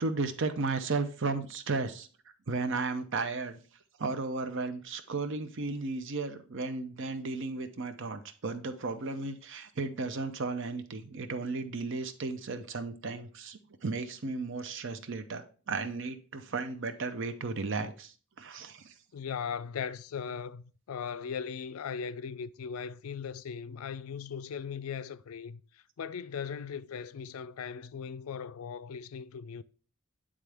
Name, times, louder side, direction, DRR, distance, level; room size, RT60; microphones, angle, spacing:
voice 1, 0.0-2.1 2.5-3.6 4.0-18.9, right 3 dB, 60° right, 0.7 m, -34 dB
voice 2, 19.1-29.6, left 6 dB, 80° left, 0.4 m, -38 dB
8.9 x 3.7 x 3.4 m
head